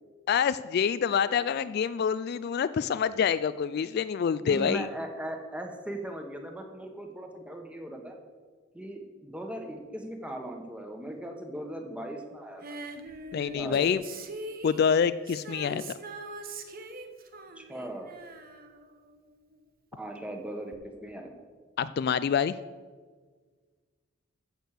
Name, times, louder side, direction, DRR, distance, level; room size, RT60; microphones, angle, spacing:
voice 1, 0.3-4.9 13.3-14.0 14.6-15.8 21.8-22.5, left 7 dB, 50° left, 14 dB, 0.3 m, -26 dB
voice 2, 4.4-8.2 8.7-12.6 13.6-14.0 17.6-18.1 20.0-21.3, right 1 dB, 5° right, 3 dB, 1.3 m, -39 dB
Female singing, 12.6-19.6 20.7-20.8, right 1 dB, 45° right, 1.0 m, -42 dB
14.5 x 6.4 x 6.6 m, 1.5 s
head